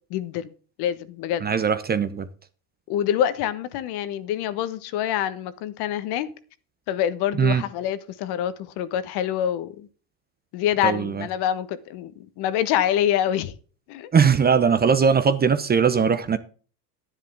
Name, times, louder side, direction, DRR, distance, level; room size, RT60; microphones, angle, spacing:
voice 1, 0.1-0.5 0.8-1.5 2.9-6.3 6.9-9.9 10.5-13.5 13.9-14.2, left 10 dB, 50° left, 1.3 m, -26 dB
voice 2, 1.4-2.3 7.4-7.6 10.8-11.1 14.1-16.4, right 6 dB, 20° right, 0.8 m, -20 dB
10.5 x 10.0 x 3.6 m
supercardioid pair, 110°, 49 cm